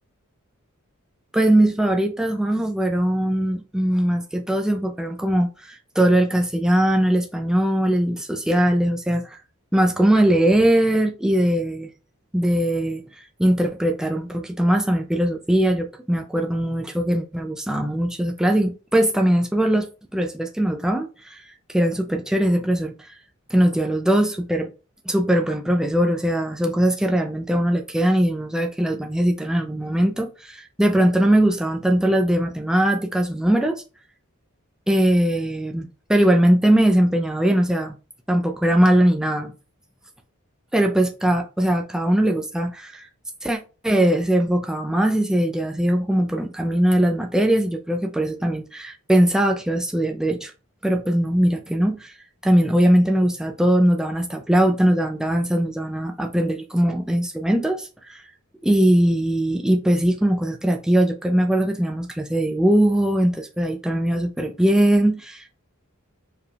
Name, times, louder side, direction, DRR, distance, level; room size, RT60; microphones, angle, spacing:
voice 1, 1.3-9.4 9.7-11.9 12.3-13.0 13.4-19.9 20.1-21.4 21.7-23.1 23.5-24.7 25.1-33.8 34.9-37.9 38.3-39.5 40.7-43.1 43.4-43.6 43.8-50.5 50.8-52.1 52.4-58.2 58.6-65.6, right 1 dB, 5° right, 0.3 m, -20 dB
4.7 x 3.3 x 2.3 m
head